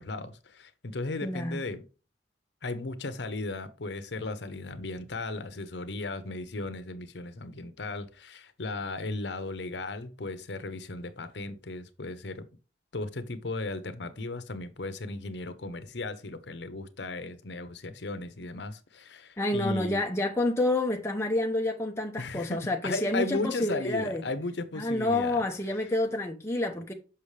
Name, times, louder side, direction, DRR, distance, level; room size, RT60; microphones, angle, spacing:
voice 1, 0.0-1.8 2.6-12.5 12.9-20.0 22.2-25.4, left 2 dB, 75° left, 0.8 m, -36 dB
voice 2, 1.2-1.6 19.4-24.2 24.8-26.9, left 2 dB, 15° left, 0.7 m, -28 dB
6.9 x 5.7 x 3.3 m
head